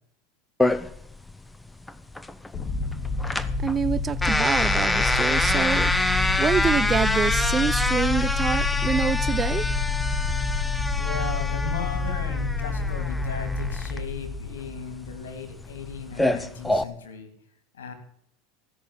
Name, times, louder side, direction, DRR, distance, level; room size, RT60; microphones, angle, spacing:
sound 1, 0.6-16.8, left 1 dB, 10° left, 0.9 m, -27 dB
sound 2, 2.5-15.5, left 4 dB, 40° left, 1.8 m, -28 dB
voice 1, 3.6-9.7, right 6 dB, 25° right, 0.5 m, -26 dB
voice 2, 11.0-17.3 17.7-17.9, left 6 dB, 85° left, 3.0 m, -36 dB
15.0 x 6.7 x 9.8 m
hypercardioid pair, 95°, 0 cm